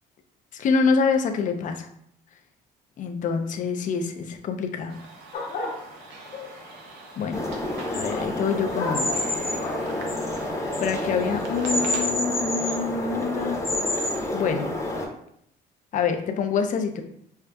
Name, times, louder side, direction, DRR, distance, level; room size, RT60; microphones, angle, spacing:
voice 1, 0.5-1.9 3.0-5.0 7.2-7.4 7.9-9.1 10.8-13.6 14.3-14.7 15.9-17.0, left 5 dB, 50° left, 6 dB, 0.5 m, -26 dB
sound 1, 4.9-12.1, right 3 dB, 85° right, 0.8 m, -43 dB
sound 2, 5.3-12.9, left 3 dB, 70° left, 0.9 m, -38 dB
sound 3, 7.3-15.1, left 1 dB, 15° left, 0.8 m, -28 dB
5.4 x 2.4 x 2.3 m, 0.70 s
cardioid pair, 110°, 17 cm